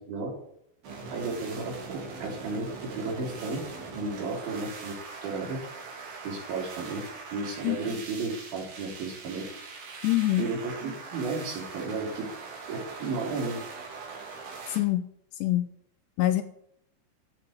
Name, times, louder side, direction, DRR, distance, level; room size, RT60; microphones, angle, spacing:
sound 1, 0.8-14.8, right 4 dB, 55° right, 4.8 m, -42 dB
voice 1, 1.1-2.6 2.9-3.6 3.9-4.9 5.2-5.6 6.2-7.0 7.3-9.4 10.4-12.3 12.7-13.6, right 3 dB, 75° right, 0 dB, 6.4 m, -33 dB
voice 2, 10.0-10.5 14.7-15.1 15.4-15.7 16.2-16.4, left 15 dB, 80° left, 11 dB, 2.6 m, -24 dB
13.5 x 8.2 x 9.7 m, 0.71 s
omnidirectional pair, 5.3 m